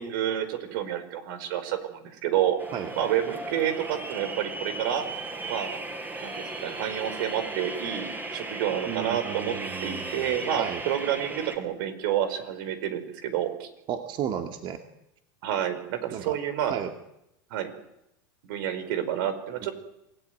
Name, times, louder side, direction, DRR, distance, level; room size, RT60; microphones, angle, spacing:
voice 1, 0.0-2.6 3.0-5.1 5.5-5.8 6.2-9.5 9.8-13.7 15.4-16.8 17.5-17.7 18.4-19.7, right 10 dB, 70° right, 11 dB, 4.8 m, -29 dB
sound 1, 2.6-11.6, right 2 dB, 15° right, 5.2 m, -36 dB
voice 2, 8.8-10.8 13.9-14.8 16.1-16.3 16.6-16.9, right 9 dB, 45° right, 6 dB, 2.3 m, -34 dB
27.5 x 18.0 x 9.5 m, 0.86 s
supercardioid pair, 115°, 12 cm